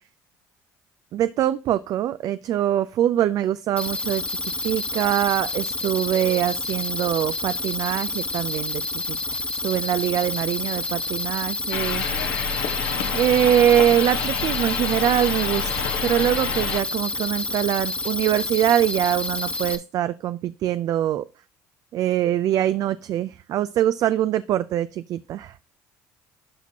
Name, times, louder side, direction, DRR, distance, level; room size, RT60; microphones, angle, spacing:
voice 1, 1.1-12.0 13.1-21.2 21.9-25.5, right 11 dB, 60° right, 14 dB, 0.4 m, -23 dB
sound 1, 3.8-19.8, left 2 dB, 15° left, 1.1 m, -29 dB
sound 2, 11.7-16.8, left 7 dB, 85° left, 1.1 m, -28 dB
12.0 x 4.3 x 2.8 m, 0.35 s
supercardioid pair, 75°, 7 cm